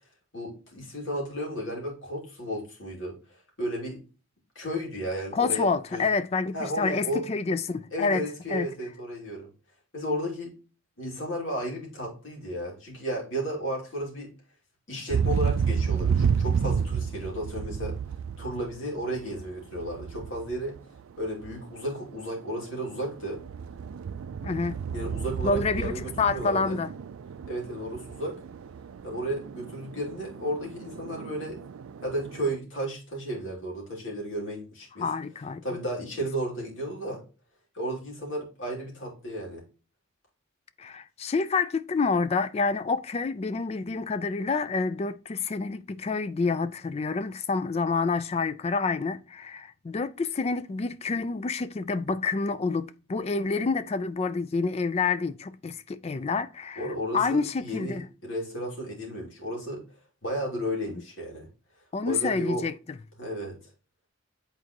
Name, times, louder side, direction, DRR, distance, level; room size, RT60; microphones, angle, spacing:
voice 1, 0.3-3.1 3.6-4.0 4.5-6.0 6.5-7.2 7.9-9.5 9.9-10.5 11.0-14.3 14.9-17.9 18.4-20.8 21.2-23.4 24.9-26.8 27.5-28.3 29.0-31.6 32.0-35.1 35.6-37.2 37.7-39.6 56.8-59.8 60.2-61.5 62.1-62.6 63.2-63.6, equal, 65° left, 2.6 m, -33 dB
voice 2, 5.3-8.2 8.5-8.7 24.4-24.8 25.4-26.9 35.0-35.6 40.8-58.1 61.9-62.7, left 4 dB, 30° left, 0.3 m, -28 dB
sound 1, 15.1-21.0 21.3-22.0 22.4-32.5, right 6 dB, 80° right, 0.4 m, -31 dB
8.6 x 4.0 x 2.9 m
head